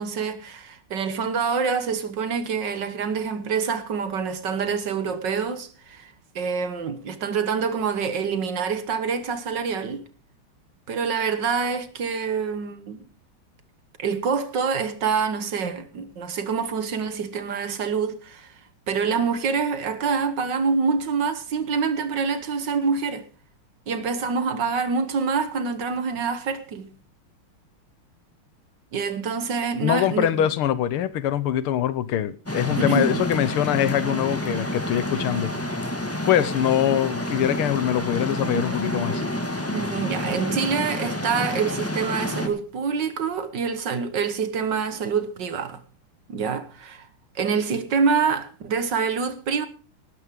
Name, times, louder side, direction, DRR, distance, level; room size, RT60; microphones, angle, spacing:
voice 1, 0.0-10.0 10.9-13.1 14.0-18.6 18.9-23.3 23.9-26.9 28.9-30.5 32.8-33.2 39.7-45.8 46.3-47.1 47.4-49.7, right 5 dB, 55° right, 1.8 m, -26 dB
voice 2, 29.8-35.5 36.3-39.2, left 11 dB, 80° left, 1.8 m, -23 dB
sound 1, 32.5-42.5, left 1 dB, 5° left, 1.4 m, -29 dB
18.0 x 12.5 x 3.7 m
omnidirectional pair, 2.4 m